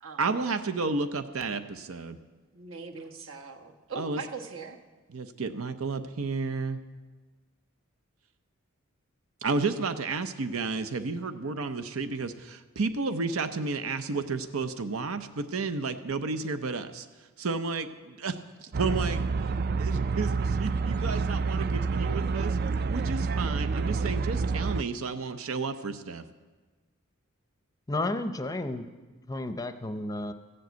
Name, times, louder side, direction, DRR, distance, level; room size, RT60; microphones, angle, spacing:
voice 1, 0.2-2.2 4.0-4.2 5.1-6.8 9.4-17.1 17.4-18.3 18.6-19.2 19.8-22.6 22.9-26.2, right 4 dB, 85° right, 9 dB, 0.7 m, -32 dB
voice 2, 2.5-4.8, right 4 dB, 70° right, 4 dB, 1.2 m, -40 dB
sound 1, 18.7-24.8, right 4 dB, 45° right, 0.3 m, -28 dB
voice 3, 27.9-28.9 29.3-30.3, left 2 dB, 15° left, 9 dB, 0.6 m, -32 dB
14.5 x 7.7 x 8.0 m, 1.3 s
head